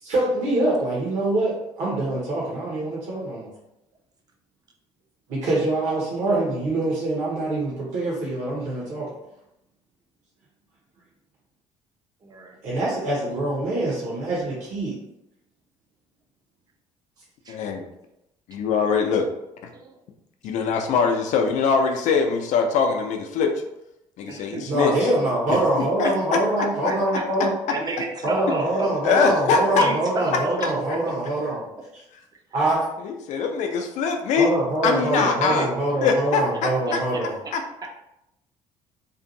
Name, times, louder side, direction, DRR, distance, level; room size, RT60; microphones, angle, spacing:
voice 1, 0.0-3.5 5.3-9.1 12.6-15.0 24.7-27.5 28.2-31.6 32.5-32.8 34.4-37.3, right 1 dB, 45° right, -6 dB, 0.9 m, -24 dB
voice 2, 12.2-12.6 17.4-17.6 18.5-18.6 19.7-20.0 24.3-25.6 26.0-27.2 27.7-29.3 29.7-31.2 35.2-36.1 36.5-37.5 37.8-37.9, right 2 dB, 25° right, 2 dB, 0.5 m, -33 dB
voice 3, 17.5-17.9 18.5-19.3 20.4-23.5 24.2-24.9 25.5-25.6 26.0-26.1 26.8-26.9 29.0-29.9 33.0-34.5 34.8-35.7 36.0-37.6, left 5 dB, 45° left, 4 dB, 0.5 m, -22 dB
2.6 x 2.5 x 2.6 m, 0.85 s
figure-of-eight pair, 50°, 16 cm